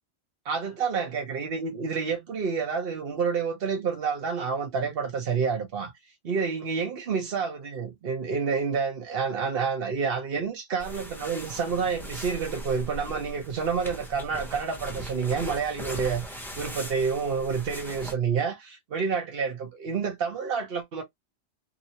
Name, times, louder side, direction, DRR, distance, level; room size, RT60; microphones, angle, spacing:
voice 1, 0.4-5.9 6.2-21.0, right 5 dB, 60° right, 1.1 m, -29 dB
sound 1, 10.8-18.1, equal, ahead, 0.6 m, -40 dB
2.9 x 2.7 x 2.8 m
omnidirectional pair, 1.1 m